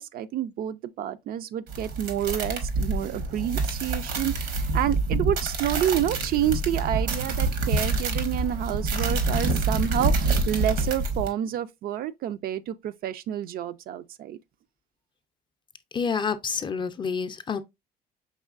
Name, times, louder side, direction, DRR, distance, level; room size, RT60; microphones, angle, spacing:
voice 1, 0.0-14.4, right 11 dB, 60° right, 0.4 m, -29 dB
sound 1, 1.7-11.3, right 3 dB, 85° right, 1.1 m, -27 dB
voice 2, 15.9-17.6, left 5 dB, 30° left, 0.5 m, -28 dB
5.4 x 3.2 x 2.4 m
cardioid pair, 110°, 17 cm